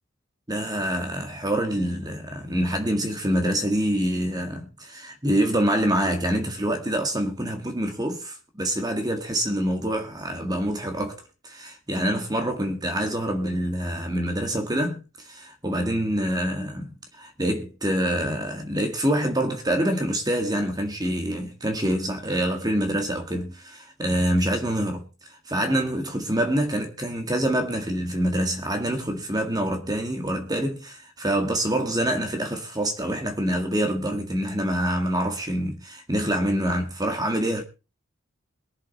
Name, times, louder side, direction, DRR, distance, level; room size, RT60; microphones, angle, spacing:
voice 1, 0.5-11.2 11.4-25.0 25.3-37.6, right 1 dB, 20° right, 1.9 m, -26 dB
22.0 x 7.5 x 4.1 m
head